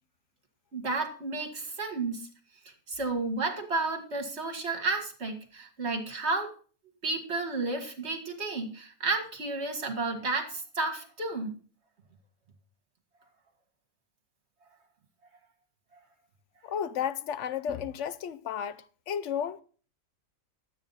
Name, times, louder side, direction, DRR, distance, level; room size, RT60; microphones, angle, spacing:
voice 1, 0.7-2.3 2.9-6.5 7.0-11.5, right 3 dB, 45° right, 2.1 m, -32 dB
voice 2, 16.6-19.6, left 8 dB, 65° left, 0.9 m, -33 dB
12.0 x 8.7 x 4.1 m
omnidirectional pair, 1.6 m